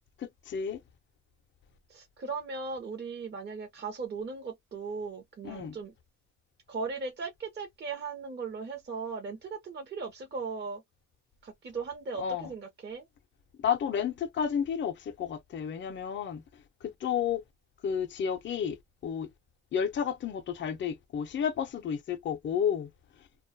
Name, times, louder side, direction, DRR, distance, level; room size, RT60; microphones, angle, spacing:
voice 1, 0.2-0.8 5.4-5.8 12.2-12.5 13.6-16.4 16.8-17.4 17.8-18.8 19.0-19.3 19.7-22.9, left 7 dB, 40° left, 0.5 m, -31 dB
voice 2, 1.9-5.9 6.7-10.8 11.4-13.0, right 4 dB, 35° right, 0.7 m, -38 dB
2.3 x 2.1 x 2.5 m
cardioid pair, 90°, 30 cm